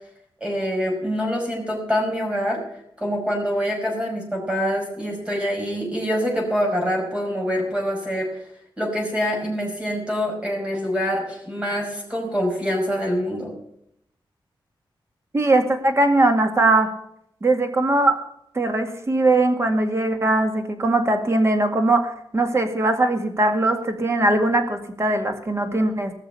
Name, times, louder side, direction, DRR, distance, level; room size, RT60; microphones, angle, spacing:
voice 1, 0.4-2.6 3.0-8.4 8.8-13.6, equal, 10° right, -1 dB, 5.3 m, -25 dB
voice 2, 15.3-16.9 17.4-18.2 18.5-26.1, right 2 dB, 30° right, 6 dB, 2.1 m, -20 dB
18.0 x 6.8 x 6.9 m, 0.73 s
wide cardioid pair, 130°, 9 cm